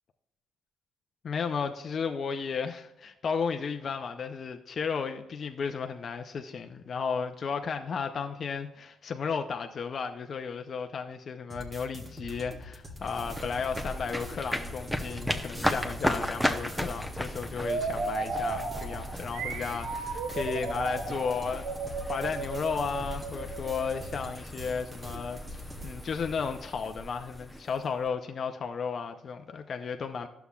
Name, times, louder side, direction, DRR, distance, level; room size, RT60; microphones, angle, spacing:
voice 1, 1.2-21.8 22.1-30.3, left 5 dB, 50° left, 5 dB, 0.5 m, -34 dB
sound 1, 11.5-25.9, equal, 30° right, 1.2 m, -45 dB
sound 2, 12.9-28.1, equal, ahead, 0.7 m, -36 dB
sound 3, 17.6-24.3, right 4 dB, 85° right, 0.8 m, -35 dB
11.0 x 6.9 x 2.4 m, 0.93 s
cardioid pair, 90°, 0 cm